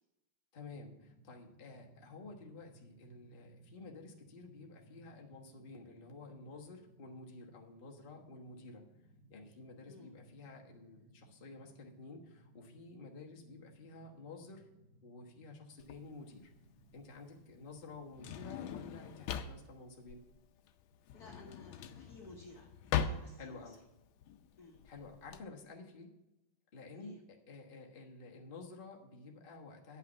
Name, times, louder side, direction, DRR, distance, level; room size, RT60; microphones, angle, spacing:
voice 1, 0.5-8.9 9.3-14.7 15.0-16.5 16.9-20.2 23.4-23.8 24.8-26.1 26.7-27.2 27.5-30.0, left 3 dB, 30° left, 0 dB, 1.2 m, -51 dB
sound 1, 0.6-19.7, right 2 dB, 30° right, 2.4 m, -63 dB
Drawer open or close, 15.8-25.4, left 8 dB, 75° left, 1.4 m, -41 dB
voice 2, 21.1-22.7 23.0-23.7 24.6-24.8 26.9-27.2, left 2 dB, 55° left, 1 dB, 1.4 m, -55 dB
9.7 x 5.7 x 7.2 m, 0.98 s
omnidirectional pair, 2.3 m